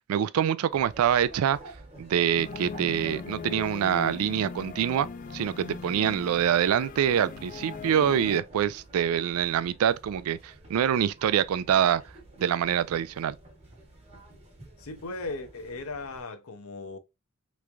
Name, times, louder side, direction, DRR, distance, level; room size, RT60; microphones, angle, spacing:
voice 1, 0.1-1.6 2.0-5.1 5.3-12.0 12.4-13.4, right 9 dB, 80° right, 0.3 m, -25 dB
sound 1, 0.7-16.2, right 1 dB, 30° right, 1.1 m, -50 dB
sound 2, 2.4-8.4, left 5 dB, 40° left, 0.3 m, -39 dB
voice 2, 14.8-17.0, left 2 dB, 75° left, 0.6 m, -37 dB
3.4 x 3.1 x 2.4 m
head